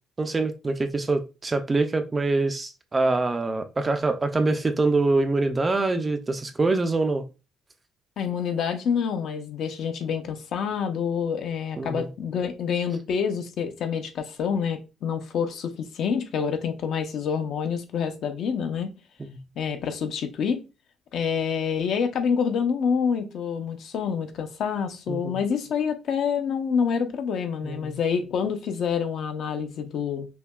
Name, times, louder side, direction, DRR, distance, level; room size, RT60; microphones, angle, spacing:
voice 1, 0.2-7.2 11.8-12.1 19.2-19.4 25.1-25.4 27.6-27.9, right 3 dB, 15° right, 0.3 m, -25 dB
voice 2, 8.2-18.9 19.6-20.6 21.1-30.3, left 6 dB, 55° left, 0.6 m, -27 dB
5.6 x 2.2 x 2.3 m
cardioid pair, 170°, 0 cm